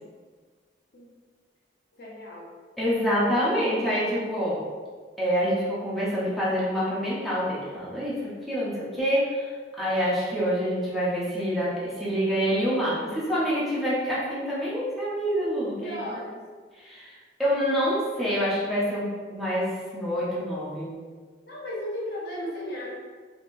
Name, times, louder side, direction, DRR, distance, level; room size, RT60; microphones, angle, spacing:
voice 1, 1.9-2.5 15.8-16.4 21.4-22.9, left 1 dB, 60° left, -5 dB, 0.8 m, -35 dB
voice 2, 2.8-4.6 5.2-9.5 9.8-16.0 16.8-17.1 17.4-21.0, equal, ahead, -10 dB, 0.8 m, -26 dB
3.4 x 2.9 x 2.5 m, 1.5 s
head